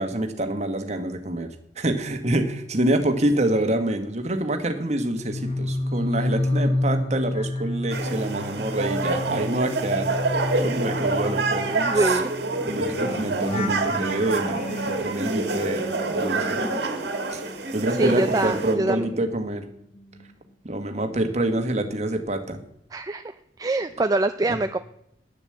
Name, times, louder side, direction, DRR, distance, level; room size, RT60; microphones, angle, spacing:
voice 1, 0.0-1.5 1.7-10.1 10.5-12.2 12.7-14.6 14.9-16.6 17.3-19.6 20.6-22.6 24.4-24.6, right 1 dB, 40° right, 7 dB, 1.4 m, -26 dB
sound 1, 5.0-17.3 17.6-19.7 20.0-20.3, left 1 dB, 35° left, 0.9 m, -31 dB
sound 2, 7.9-18.7, right 3 dB, 65° right, 1.7 m, -27 dB
voice 2, 11.6-12.3 18.0-19.1 22.9-23.2 23.6-24.8, right 2 dB, 20° right, 8 dB, 0.4 m, -24 dB
10.0 x 7.0 x 7.8 m, 0.74 s
head